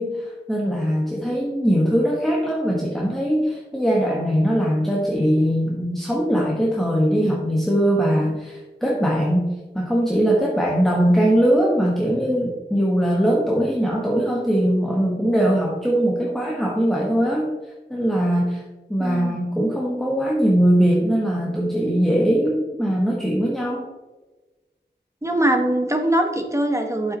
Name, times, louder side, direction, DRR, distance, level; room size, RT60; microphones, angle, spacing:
voice 1, 0.0-17.5 17.9-18.6 18.9-23.9, equal, ahead, -3 dB, 1.4 m, -21 dB
voice 2, 19.0-19.4 25.2-27.2, right 1 dB, 15° right, 3 dB, 1.0 m, -22 dB
9.0 x 7.3 x 2.9 m, 1.2 s
wide cardioid pair, 65°, 19 cm